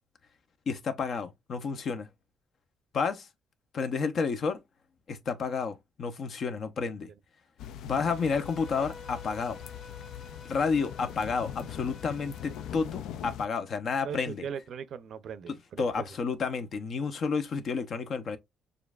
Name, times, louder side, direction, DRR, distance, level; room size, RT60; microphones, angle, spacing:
voice 1, 0.7-2.1 2.9-3.3 3.7-4.6 5.1-7.1 7.8-9.6 10.5-14.5 15.8-18.4, left 5 dB, 45° left, 0.7 m, -30 dB
sound 1, 7.6-13.5, left 10 dB, 80° left, 0.4 m, -42 dB
Bowed string instrument, 7.9-12.9, left 4 dB, 30° left, 1.6 m, -50 dB
voice 2, 14.0-16.1, right 7 dB, 55° right, 0.5 m, -39 dB
6.7 x 2.5 x 2.4 m
cardioid pair, 140°, 0 cm